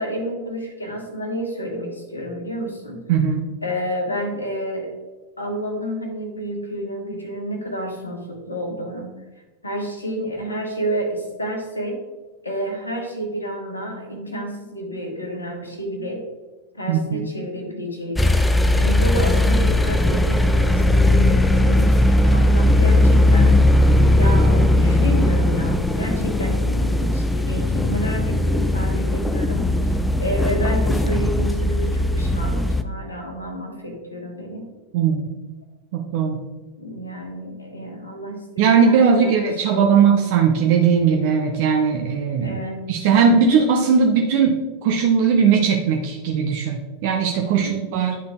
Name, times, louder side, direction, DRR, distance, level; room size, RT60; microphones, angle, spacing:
voice 1, 0.0-3.0 3.6-4.9 5.4-9.1 9.6-12.0 12.4-16.2 16.7-18.3 18.8-23.6 24.1-34.7 36.8-40.1 42.4-42.9 47.5-48.1, right 1 dB, 80° left, 2 dB, 1.4 m, -30 dB
voice 2, 3.1-3.5 16.9-17.3 34.9-35.3 36.1-36.4 38.6-42.6 42.9-44.6 44.8-48.2, right 6 dB, 50° right, 1 dB, 0.7 m, -18 dB
sound 1, 18.2-32.8, left 1 dB, 5° left, 0.4 m, -18 dB
10.5 x 3.8 x 3.7 m, 1.2 s
figure-of-eight pair, 90°, 0 cm